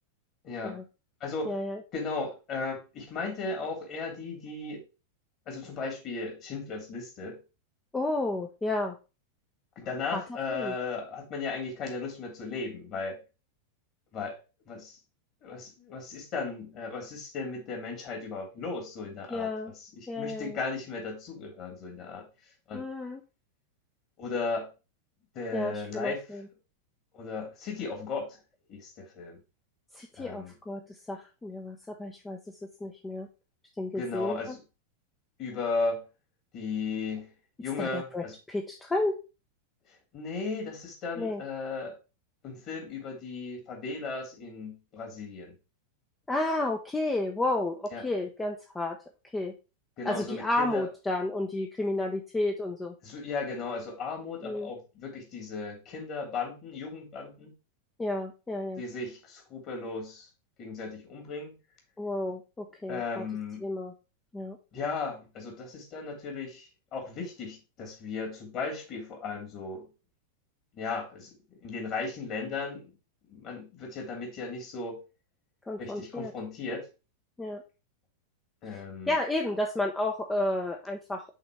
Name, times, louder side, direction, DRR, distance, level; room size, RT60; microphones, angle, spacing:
voice 1, 0.4-0.8 1.2-1.5 1.9-4.8 5.5-7.4 9.8-13.2 14.1-14.4 14.7-15.0 15.4-19.5 19.8-22.3 22.7-22.8 24.2-24.7 25.3-26.2 27.1-28.4 28.7-29.4 30.2-30.5 33.9-34.6 35.4-36.0 36.5-37.3 37.6-38.3 40.1-42.0 42.4-45.5 47.9-48.0 50.0-50.9 53.0-57.5 58.8-60.3 60.6-61.5 62.9-63.6 64.7-69.9 70.7-72.9 73.3-75.0 75.8-76.9 78.6-79.1, left 4 dB, 35° left, 1 dB, 2.9 m, -36 dB
voice 2, 1.4-1.8 7.9-9.0 10.1-10.2 10.5-10.8 19.3-19.7 20.1-20.6 22.7-23.2 25.5-26.5 29.9-33.3 33.8-34.6 37.8-39.2 41.2-41.4 46.3-49.0 49.3-49.5 50.0-52.9 54.4-54.7 58.0-58.8 62.0-63.2 63.6-63.9 64.3-64.6 75.7-76.3 77.4-77.6 78.7-81.2, left 2 dB, 10° left, 3 dB, 0.8 m, -32 dB
5.8 x 4.2 x 4.7 m, 0.30 s
figure-of-eight pair, 90°, 0 cm